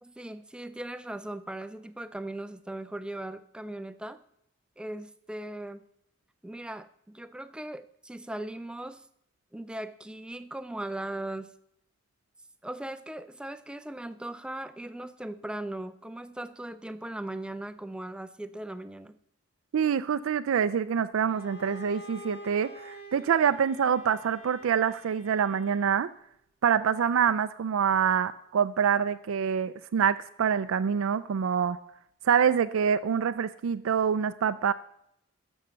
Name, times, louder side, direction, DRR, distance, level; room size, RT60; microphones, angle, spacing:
voice 1, 0.0-4.2 4.8-5.8 6.4-9.1 9.5-11.5 12.6-19.2, right 1 dB, 5° right, 11 dB, 0.4 m, -38 dB
voice 2, 19.7-26.1 26.6-31.8 32.2-34.7, right 7 dB, 80° right, 11 dB, 0.4 m, -26 dB
Bowed string instrument, 21.3-26.1, left 1 dB, 30° left, 0.9 m, -47 dB
12.0 x 6.3 x 6.8 m, 0.74 s
head